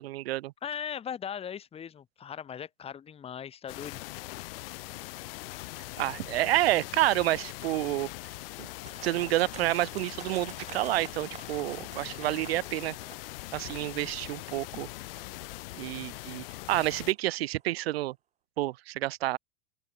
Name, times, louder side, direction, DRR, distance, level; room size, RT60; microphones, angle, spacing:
voice 1, 0.0-0.5 6.0-8.1 8.6-8.7 9.0-13.0 13.5-14.9 15.8-18.2 18.6-19.4, right 16 dB, 75° right, 0.7 m, -29 dB
voice 2, 0.6-4.0, left 8 dB, 20° left, 0.9 m, -38 dB
sound 1, 3.7-17.1, left 21 dB, 65° left, 2.1 m, -41 dB
sound 2, 8.6-17.7, right 9 dB, 20° right, 0.9 m, -52 dB
open air
hypercardioid pair, 110°, 31 cm